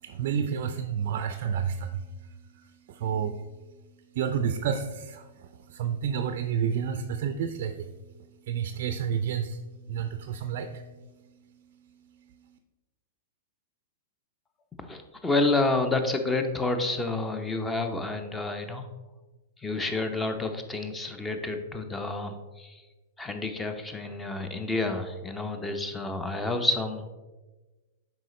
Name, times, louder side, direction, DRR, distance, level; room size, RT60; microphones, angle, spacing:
voice 1, 0.0-3.4 4.1-8.0 8.4-12.6, right 7 dB, 55° right, 8 dB, 0.4 m, -31 dB
voice 2, 14.9-18.9 19.6-22.7 23.2-27.1, left 2 dB, 10° left, 7 dB, 0.7 m, -29 dB
7.6 x 4.9 x 3.1 m, 1.2 s
hypercardioid pair, 105°, 0 cm